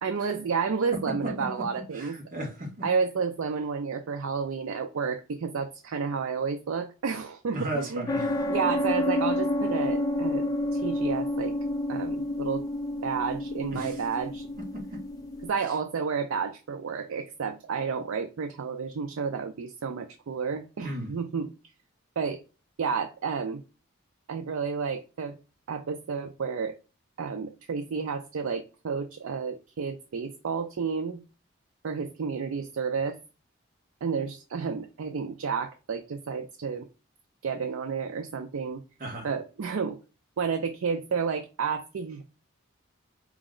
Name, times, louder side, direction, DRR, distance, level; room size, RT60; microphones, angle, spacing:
voice 1, 0.0-2.2 2.8-8.1 8.5-11.6 11.9-12.6 13.0-14.5 15.4-21.5 22.2-22.4 22.8-23.6 24.3-25.4 25.7-26.7 27.2-31.2 31.8-33.2 34.0-36.9 37.4-38.8 39.2-40.0 40.4-42.2, right 5 dB, 75° right, 0.4 m, -31 dB
voice 2, 0.9-1.7 1.9-2.9 7.5-8.5 13.7-14.0 14.6-15.0 20.8-21.1 39.0-39.3, right 1 dB, 40° right, 1.1 m, -35 dB
sound 1, 8.1-15.5, left 1 dB, 15° left, 0.4 m, -29 dB
4.7 x 2.0 x 3.7 m
head